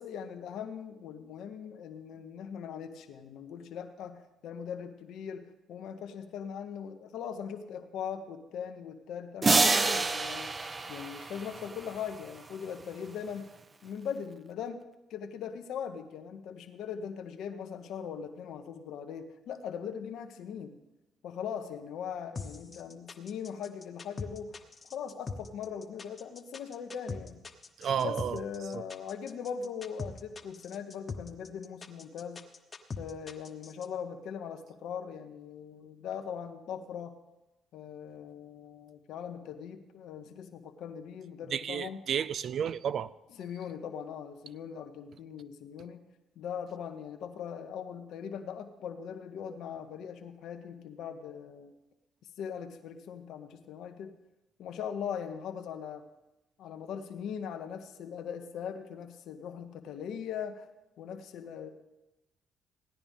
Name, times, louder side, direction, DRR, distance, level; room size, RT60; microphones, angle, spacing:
voice 1, 0.0-10.5 10.9-13.5 13.8-14.8 15.1-20.8 21.2-24.6 24.9-27.4 28.0-32.4 33.0-37.2 37.7-42.0 43.4-46.0 46.4-51.7 52.4-54.2 54.6-56.0 56.6-60.7 61.0-61.7, left 7 dB, 75° left, 1.0 m, -40 dB
sound 1, 9.4-11.9, right 3 dB, 35° right, 0.7 m, -27 dB
sound 2, 22.3-33.9, left 4 dB, 40° left, 1.1 m, -41 dB
voice 2, 27.8-28.4 41.5-43.1, right 8 dB, 65° right, 0.4 m, -31 dB
17.0 x 9.9 x 3.6 m
supercardioid pair, 65°, 0 cm